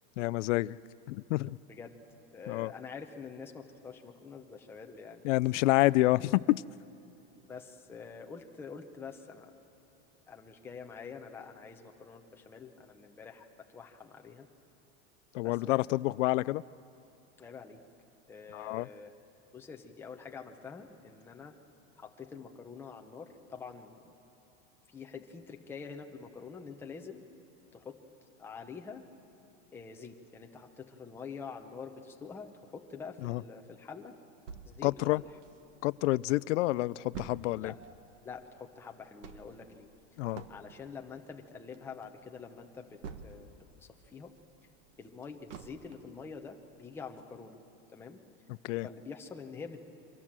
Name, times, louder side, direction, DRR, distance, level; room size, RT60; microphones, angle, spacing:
voice 1, 0.2-0.8 1.1-1.6 2.5-2.7 5.2-6.6 15.3-16.6 18.5-18.9 33.2-33.4 34.8-35.2 35.8-37.7 40.2-40.4 48.6-48.9, left 19 dB, 85° left, 20 dB, 0.5 m, -28 dB
voice 2, 2.3-5.3 7.4-9.6 10.3-14.5 15.4-15.8 17.4-17.8 18.3-19.1 19.5-21.6 22.0-24.1 24.9-27.2 27.7-28.0 28.4-29.0 29.7-34.2 34.6-35.3 37.6-37.8 38.2-39.9 40.5-43.5 43.8-44.3 45.0-47.6 47.9-48.2 48.8-49.8, left 5 dB, 5° left, 3 dB, 0.7 m, -46 dB
sound 1, 34.5-36.0 36.4-36.5 36.7-43.7 44.1-46.2 46.7-46.8 47.2-47.3, right 6 dB, 90° right, 1.7 m, -49 dB
28.5 x 24.0 x 7.5 m, 2.8 s
supercardioid pair, 180°, 36 cm